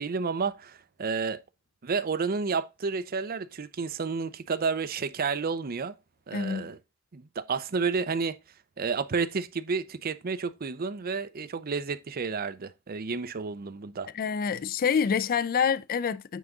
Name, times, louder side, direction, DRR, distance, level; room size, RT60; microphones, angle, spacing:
voice 1, 0.0-1.4 1.8-5.9 6.3-6.8 7.1-8.4 8.8-14.1, right 5 dB, 45° right, 0.5 m, -31 dB
voice 2, 6.3-6.7 14.1-16.4, left 6 dB, 45° left, 0.4 m, -27 dB
9.2 x 3.9 x 3.7 m
head